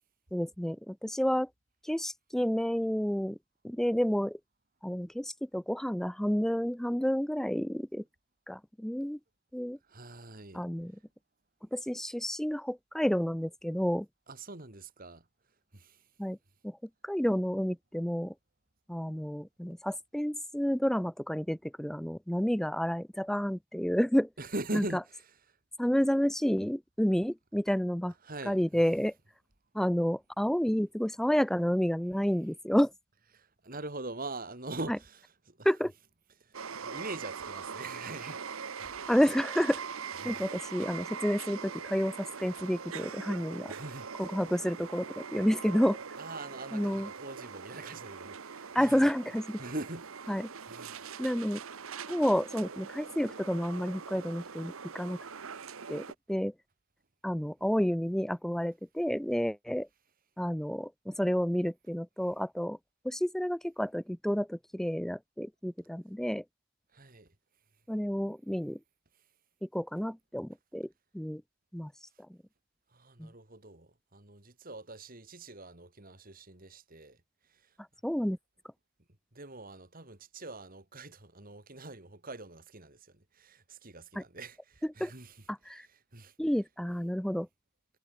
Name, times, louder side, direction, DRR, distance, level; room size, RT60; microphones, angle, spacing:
voice 1, 0.3-1.5 1.8-3.4 3.6-4.4 4.8-8.0 8.5-9.2 9.5-9.8 10.5-10.9 11.7-14.1 16.2-16.4 16.6-16.8 17.0-18.3 18.9-24.3 24.7-24.8 25.8-28.1 28.5-29.1 29.7-32.9 35.6-35.9 39.1-39.8 40.2-43.7 44.2-46.0 46.7-47.1 48.7-49.6 50.3-50.5 51.2-51.6 52.1-55.2 55.9-56.5 57.2-59.9 60.4-62.8 63.0-66.4 67.9-68.8 69.6-71.4 71.7-71.9 72.3-72.4 73.2-73.3 78.0-78.4 84.2-84.3 85.0-85.1 85.5-85.9 86.4-87.5, equal, ahead, 0.3 m, -30 dB
voice 2, 9.8-10.6 14.3-15.3 15.7-16.1 24.4-25.4 28.2-28.8 33.3-35.7 36.4-39.0 40.2-40.4 43.7-44.4 46.1-49.1 49.6-51.1 66.9-67.3 72.9-77.8 79.3-86.3, right 2 dB, 40° right, 2.9 m, -43 dB
sound 1, 36.5-56.1, right 6 dB, 70° right, 1.0 m, -42 dB
head